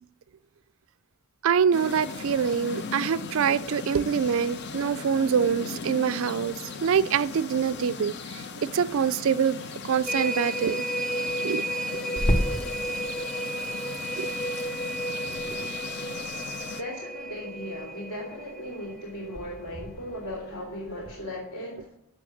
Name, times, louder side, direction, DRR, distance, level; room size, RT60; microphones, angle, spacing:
voice 1, 1.4-9.6 9.8-10.8 11.4-11.6 14.2-14.3, right 7 dB, 60° right, 0.4 m, -25 dB
sound 1, 1.7-16.8, left 4 dB, 50° left, 0.7 m, -38 dB
sound 2, 10.1-19.8 20.2-20.3, right 1 dB, 5° left, 0.4 m, -33 dB
Water tap faucet / Sink (filling or washing), 12.2-21.1, equal, 30° left, 1.1 m, -34 dB
voice 2, 16.8-21.9, equal, 65° left, 2.9 m, -37 dB
7.7 x 7.2 x 8.3 m
head